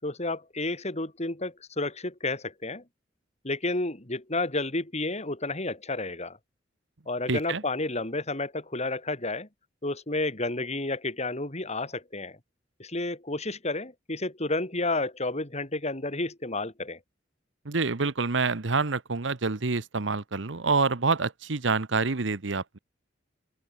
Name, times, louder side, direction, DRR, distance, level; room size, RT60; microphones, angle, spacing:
voice 1, 0.0-2.8 3.4-6.4 7.1-9.5 9.8-12.4 12.8-17.0, left 2 dB, 35° left, 4.2 m, -31 dB
voice 2, 7.3-7.6 17.6-22.8, right 4 dB, 75° right, 1.1 m, -27 dB
open air
head